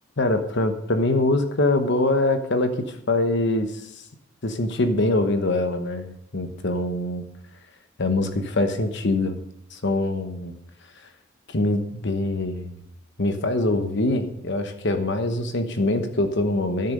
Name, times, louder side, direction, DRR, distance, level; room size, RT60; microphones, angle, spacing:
voice 1, 0.2-3.7 4.4-7.2 8.0-9.4 9.7-10.5 11.5-12.8 13.2-16.9, left 2 dB, 60° left, 8 dB, 1.1 m, -23 dB
13.0 x 6.9 x 6.5 m, 0.78 s
head